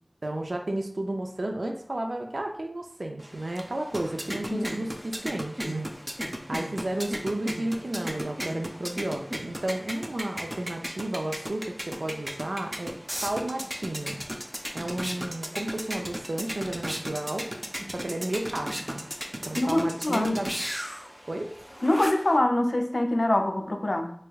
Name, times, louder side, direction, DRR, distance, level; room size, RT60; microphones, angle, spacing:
voice 1, 0.2-5.9 6.5-12.9 13.2-14.2 14.7-17.5 17.9-19.0 19.4-20.5 21.3-21.5, right 1 dB, 85° right, 3 dB, 0.4 m, -32 dB
sound 1, 3.2-22.4, equal, 15° right, 0.4 m, -36 dB
voice 2, 19.6-20.4 21.8-24.1, left 1 dB, 70° left, 5 dB, 0.4 m, -24 dB
3.4 x 3.2 x 2.3 m, 0.64 s
wide cardioid pair, 45°, 0 cm